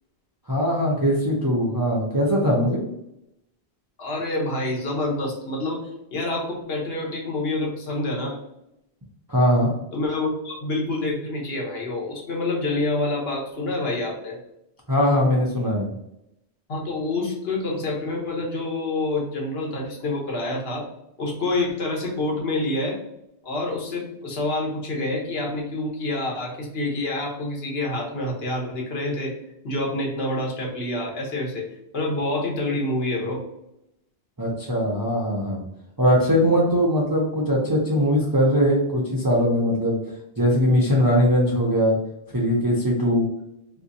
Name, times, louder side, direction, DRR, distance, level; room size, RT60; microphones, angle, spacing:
voice 1, 0.5-2.8 9.3-9.7 14.9-15.9 34.4-35.6 36.0-40.0 40.4-42.0 42.3-43.3, equal, 30° right, -3 dB, 0.4 m, -20 dB
voice 2, 4.0-8.4 9.9-14.4 16.7-20.9 21.2-23.0 23.4-29.3 29.6-31.7 31.9-33.4, left 2 dB, 65° left, -2 dB, 1.2 m, -27 dB
3.4 x 2.7 x 2.6 m, 0.83 s
omnidirectional pair, 1.1 m